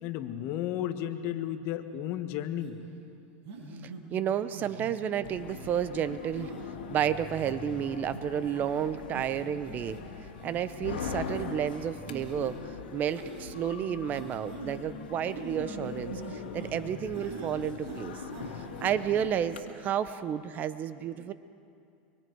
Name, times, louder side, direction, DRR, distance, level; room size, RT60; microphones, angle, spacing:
voice 1, 0.0-2.8, left 11 dB, 50° left, 8 dB, 1.5 m, -33 dB
sound 1, 2.6-2.8 3.5-4.0 4.5-5.0 5.6-5.8 6.4-6.6 7.1-7.6 8.1-8.2 8.6-8.8 9.1-9.2 9.6-10.0 10.4-10.5 11.2-11.4 12.1-12.6 13.1-13.5 14.1-14.8 15.3-16.8 17.1-17.6 17.8-18.5 18.8-18.9, right 4 dB, 55° right, 5.9 m, -42 dB
voice 2, 3.8-6.5 6.9-10.0 10.4-18.2 18.5-21.3, right 9 dB, 35° right, 13 dB, 0.8 m, -31 dB
sound 2, 5.2-19.6, left 6 dB, 90° left, 2.1 m, -41 dB
24.5 x 24.0 x 4.7 m, 2.5 s
supercardioid pair, 120°, 5 cm